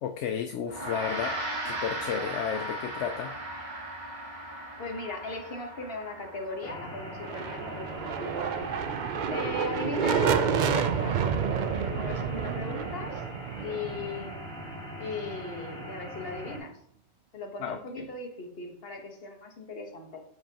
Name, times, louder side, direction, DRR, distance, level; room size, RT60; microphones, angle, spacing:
voice 1, 0.0-3.3 17.6-18.0, left 8 dB, 70° left, 6 dB, 0.8 m, -33 dB
Gong, 0.7-10.2, right 1 dB, 35° right, 1.3 m, -38 dB
voice 2, 4.8-8.7 9.3-11.2 11.7-13.2 13.6-14.4 15.0-16.8 17.3-20.2, left 3 dB, 50° left, 3 dB, 1.4 m, -38 dB
sound 1, 6.6-16.6, equal, 5° left, 2.2 m, -41 dB
sound 2, 7.1-14.9, right 7 dB, 70° right, 0.4 m, -29 dB
7.7 x 7.2 x 2.9 m, 0.64 s
omnidirectional pair, 1.3 m